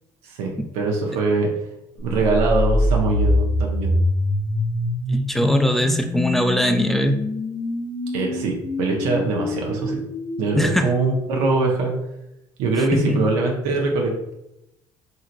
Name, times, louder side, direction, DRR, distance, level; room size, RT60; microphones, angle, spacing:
voice 1, 0.7-1.5 2.0-4.0 8.1-10.0 10.4-11.9 12.6-14.3, right 3 dB, 85° right, 0 dB, 0.5 m, -22 dB
sound 1, 2.2-12.0, left 1 dB, 35° left, 0.6 m, -25 dB
voice 2, 5.1-7.2 10.5-10.9 12.9-13.2, equal, ahead, 6 dB, 0.3 m, -20 dB
2.9 x 2.7 x 2.5 m, 0.88 s
supercardioid pair, 80°, 11 cm